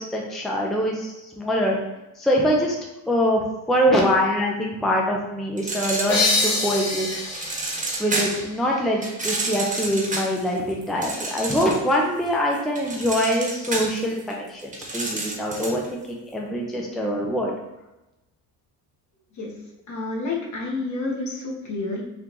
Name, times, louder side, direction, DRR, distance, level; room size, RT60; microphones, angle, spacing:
voice 1, 0.0-1.8 2.2-2.8 3.1-3.4 3.7-7.1 8.0-16.0 16.3-17.5, equal, ahead, -1 dB, 0.5 m, -24 dB
sound 1, 5.6-6.6 7.1-8.5 9.0-12.0 12.3-15.9, right 2 dB, 20° right, 1.1 m, -29 dB
sound 2, 6.1-9.5, left 2 dB, 85° left, 1.0 m, -27 dB
voice 2, 19.9-22.0, left 3 dB, 50° left, -2 dB, 1.2 m, -29 dB
3.7 x 2.4 x 3.0 m, 0.97 s
supercardioid pair, 80°, 38 cm